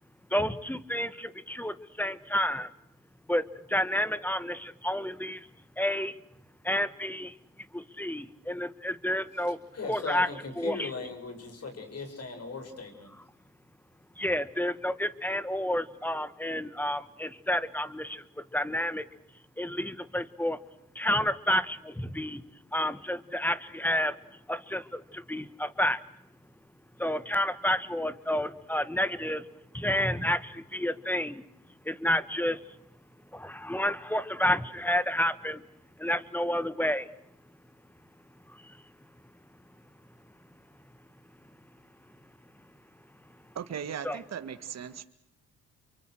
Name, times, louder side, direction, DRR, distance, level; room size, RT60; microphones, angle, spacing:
voice 1, 0.3-2.7 3.3-3.4 3.7-5.4 5.8-6.1 6.6-7.3 7.7-9.6 9.9-10.3 10.6-10.9 14.2-18.2 18.5-19.0 19.6-20.6 20.9-22.4 22.7-24.1 24.5-26.0 27.0-29.4 29.7-31.4 31.9-32.6 33.3-35.6 36.0-37.1 44.0-44.2, left 1 dB, 5° left, 14 dB, 1.7 m, -30 dB
voice 2, 9.5-13.2, left 4 dB, 50° left, 6 dB, 7.4 m, -39 dB
voice 3, 43.6-45.0, right 8 dB, 55° right, 9 dB, 2.0 m, -38 dB
29.5 x 24.0 x 6.5 m, 0.81 s
supercardioid pair, 65°, 32 cm